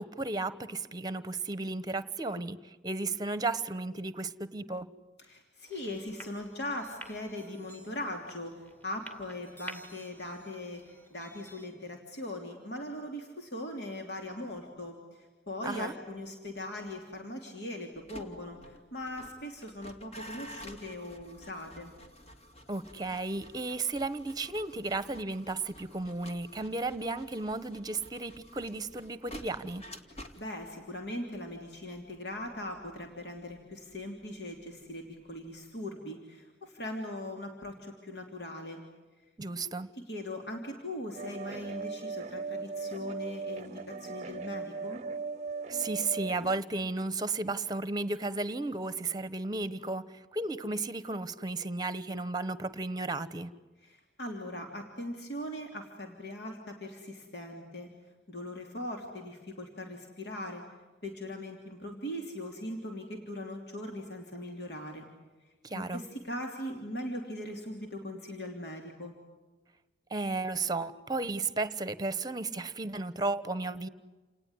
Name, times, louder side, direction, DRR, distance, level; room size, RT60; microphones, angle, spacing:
voice 1, 0.0-4.9 15.6-15.9 22.7-29.8 39.4-39.9 45.7-53.5 65.6-66.0 70.1-73.9, right 3 dB, 25° right, 14 dB, 1.1 m, -34 dB
voice 2, 5.2-21.9 30.4-38.8 39.9-45.0 53.8-57.9 58.3-60.6 61.0-65.1 65.7-69.2, left 1 dB, 65° left, 2 dB, 3.2 m, -40 dB
sound 1, 5.7-11.7, right 1 dB, 10° left, 2.3 m, -51 dB
sound 2, 17.9-34.9 35.2-35.6, equal, 35° left, 2.3 m, -51 dB
sound 3, 41.2-46.6, right 4 dB, 40° right, 0.8 m, -38 dB
29.0 x 19.0 x 9.8 m, 1.3 s
head